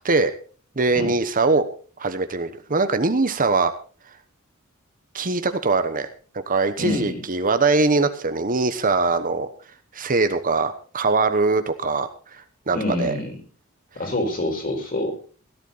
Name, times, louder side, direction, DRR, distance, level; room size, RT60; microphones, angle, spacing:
voice 1, 0.8-1.7 2.0-3.7 5.1-6.1 6.5-9.5 9.9-13.1, right 3 dB, 40° right, 10 dB, 1.1 m, -22 dB
voice 2, 6.8-7.2 12.7-13.4 13.9-15.1, left 1 dB, 40° left, 3 dB, 4.8 m, -26 dB
17.5 x 12.0 x 4.1 m, 0.39 s
head